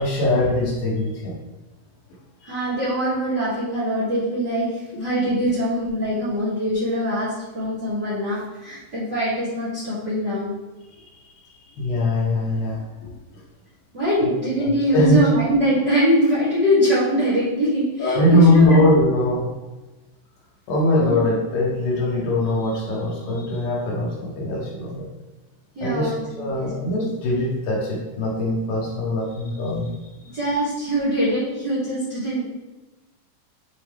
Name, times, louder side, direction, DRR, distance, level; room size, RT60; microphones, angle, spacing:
voice 1, 0.0-1.3 2.4-2.5 11.8-12.8 14.9-15.2 18.0-19.5 20.7-25.0 25.8-26.1 26.4-29.9, left 1 dB, 70° left, -4 dB, 2.7 m, -21 dB
voice 2, 2.4-10.5 13.9-18.8 20.9-21.2 25.7-26.9 29.7-29.8 30.3-32.4, equal, 40° right, -10 dB, 1.6 m, -23 dB
6.9 x 4.5 x 3.3 m, 1.1 s
omnidirectional pair, 4.6 m